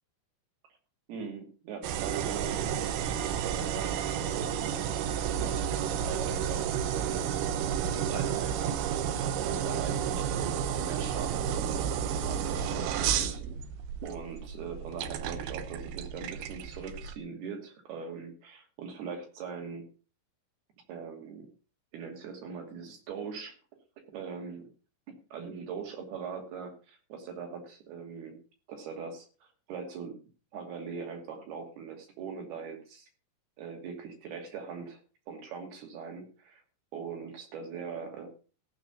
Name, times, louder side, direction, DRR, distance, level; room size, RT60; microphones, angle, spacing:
voice 1, 1.1-4.8 5.4-7.5 7.8-11.5 11.7-13.4 14.0-19.8 20.9-21.5 21.9-23.5 24.1-24.7 25.1-28.4 28.7-30.2 30.5-33.1 33.6-35.0 35.3-36.6 36.9-38.3, right 6 dB, 55° right, 4 dB, 4.1 m, -41 dB
sound 1, 1.8-17.2, right 8 dB, 80° right, 2.2 m, -31 dB
15.0 x 6.1 x 7.0 m, 0.37 s
omnidirectional pair, 5.8 m